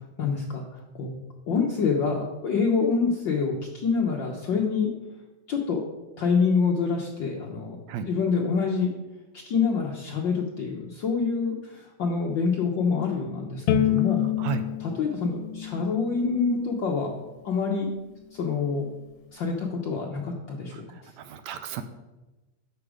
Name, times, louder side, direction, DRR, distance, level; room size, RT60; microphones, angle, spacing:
voice 1, 0.2-0.6 0.9-1.1 1.5-4.9 5.5-5.8 6.2-7.8 8.1-8.9 9.3-14.3 14.8-17.1 17.4-17.9 18.3-18.9 19.3-21.1, left 5 dB, 70° left, 0 dB, 1.1 m, -26 dB
Bowed string instrument, 13.7-16.9, left 11 dB, 85° left, 2.1 m, -28 dB
voice 2, 20.7-21.8, right 7 dB, 75° right, 9 dB, 1.8 m, -33 dB
11.5 x 7.0 x 4.9 m, 1.1 s
omnidirectional pair, 3.5 m